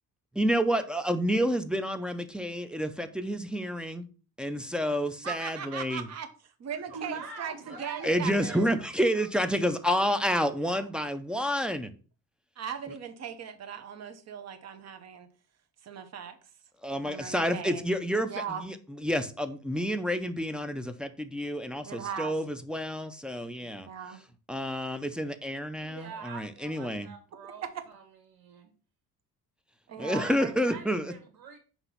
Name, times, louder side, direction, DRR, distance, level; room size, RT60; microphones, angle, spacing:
voice 1, 0.4-4.0 4.4-6.1 8.0-11.9 16.8-23.9 24.5-27.1 30.0-31.1, equal, 5° right, 0.3 m, -29 dB
voice 2, 5.2-6.3 6.6-8.7 12.6-15.3 15.8-16.4 17.0-17.8 18.1-18.6 21.8-22.3 23.6-24.2 27.6-27.7 29.9-30.5, right 7 dB, 45° right, 0.9 m, -38 dB
voice 3, 6.9-8.8 9.1-10.1 10.7-10.8 25.8-28.0 28.3-28.7 30.1-30.4 30.6-31.6, right 5 dB, 85° right, 1.7 m, -44 dB
5.9 x 3.0 x 5.4 m
cardioid pair, 160°, 35 cm